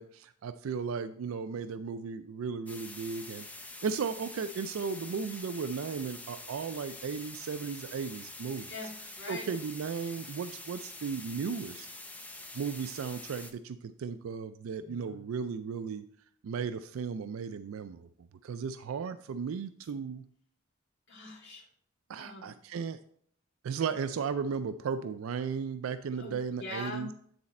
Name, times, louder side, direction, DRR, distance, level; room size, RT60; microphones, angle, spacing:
voice 1, 0.0-3.4 3.8-8.7 9.3-11.9 12.5-16.0 16.4-18.1 18.4-20.2 22.1-23.0 23.6-27.1, right 6 dB, 80° right, 11 dB, 0.4 m, -35 dB
sound 1, 2.7-13.5, left 2 dB, 5° left, 0.6 m, -46 dB
voice 2, 8.7-9.5 14.8-15.2 21.1-21.6 22.2-22.5 26.1-27.1, left 1 dB, 60° left, -2 dB, 2.1 m, -42 dB
9.5 x 4.2 x 4.2 m, 0.62 s
head